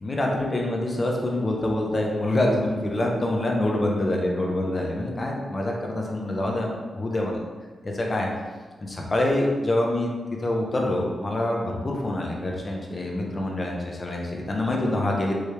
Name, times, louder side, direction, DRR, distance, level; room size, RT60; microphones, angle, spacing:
voice 1, 0.0-7.3 7.8-8.3 8.8-10.1 10.4-15.3, left 1 dB, 30° left, -1 dB, 0.6 m, -26 dB
4.7 x 3.3 x 3.3 m, 1.5 s
wide cardioid pair, 140°, 0 cm